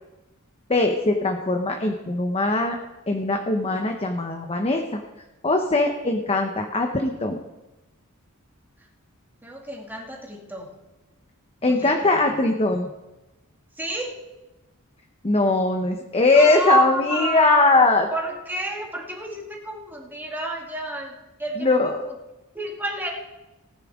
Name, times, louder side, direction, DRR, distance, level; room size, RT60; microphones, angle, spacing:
voice 1, 0.7-2.8 3.1-5.0 5.4-7.4 11.6-12.9 15.2-18.1 21.6-22.0, left 2 dB, 25° left, 4 dB, 0.8 m, -21 dB
voice 2, 9.4-10.7 11.7-12.4 13.8-14.2 16.3-22.2 22.5-23.1, right 2 dB, 10° right, -1 dB, 2.0 m, -30 dB
18.0 x 9.8 x 3.6 m, 1.0 s
head